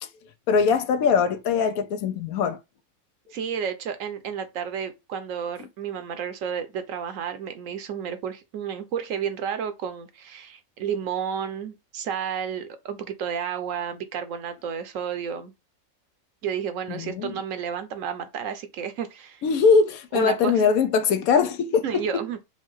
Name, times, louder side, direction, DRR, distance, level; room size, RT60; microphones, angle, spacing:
voice 1, 0.5-2.6 16.9-17.4 19.4-22.2, left 5 dB, 85° left, 1.1 m, -22 dB
voice 2, 3.3-15.5 16.4-19.4 20.1-20.6 21.8-22.4, right 7 dB, 70° right, 1.0 m, -31 dB
4.5 x 2.2 x 4.4 m
omnidirectional pair, 1.5 m